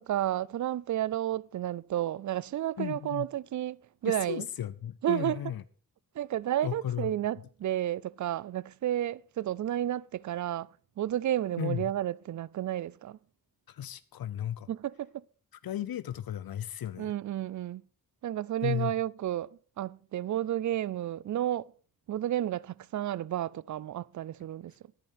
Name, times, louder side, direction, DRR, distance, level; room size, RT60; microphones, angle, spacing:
voice 1, 0.0-3.8 4.0-4.5 5.0-5.4 6.2-10.7 11.0-13.2 14.7-15.2 17.0-17.8 18.2-21.7 22.1-24.7, right 12 dB, 55° right, 0.5 m, -31 dB
voice 2, 2.8-3.3 4.0-5.6 6.6-7.1 11.6-11.8 13.7-14.7 15.6-17.1 18.6-18.9, left 10 dB, 70° left, 0.8 m, -34 dB
10.5 x 10.5 x 5.5 m
cardioid pair, 85°, 37 cm